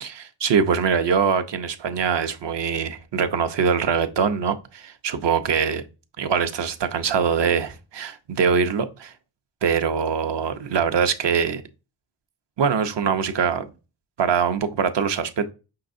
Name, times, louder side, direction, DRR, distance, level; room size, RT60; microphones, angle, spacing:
voice 1, 0.0-5.8 6.2-9.1 9.6-11.6 12.6-13.7 14.2-15.5, right 6 dB, 60° right, 0.7 m, -23 dB
5.4 x 3.8 x 2.5 m
cardioid pair, 55°, 48 cm